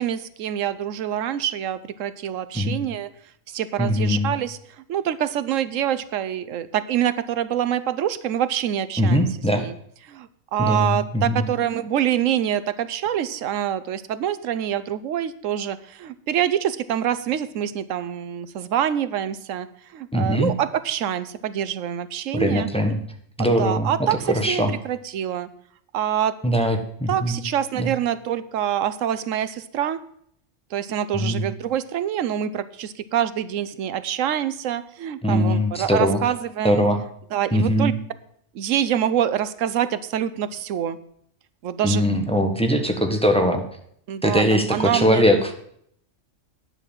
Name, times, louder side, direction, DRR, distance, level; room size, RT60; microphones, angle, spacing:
voice 1, 0.0-3.1 3.5-4.6 4.9-9.3 9.6-9.7 10.1-19.7 19.9-22.7 23.4-25.5 25.9-26.3 27.1-30.0 30.7-36.9 37.3-37.9 38.5-41.0 41.6-42.0 44.1-45.3, right 10 dB, 85° right, 14 dB, 1.1 m, -25 dB
voice 2, 3.8-4.3 9.0-9.6 10.6-11.5 20.1-20.5 22.3-23.0 23.4-23.9 24.3-24.7 26.4-27.4 27.8-27.9 31.1-31.5 35.2-36.2 36.6-37.0 37.5-37.9 41.8-43.6 44.2-45.5, equal, 5° left, 4 dB, 1.2 m, -21 dB
10.0 x 6.9 x 7.3 m, 0.67 s
omnidirectional pair, 1.3 m